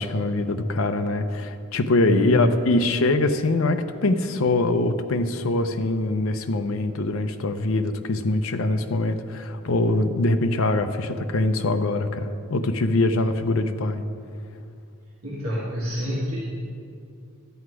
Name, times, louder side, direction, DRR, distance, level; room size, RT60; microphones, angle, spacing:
voice 1, 0.0-14.0, left 2 dB, 65° left, 8 dB, 0.6 m, -23 dB
voice 2, 2.0-2.6 15.2-16.4, equal, 65° right, -7 dB, 1.8 m, -26 dB
12.0 x 8.0 x 4.7 m, 2.4 s
head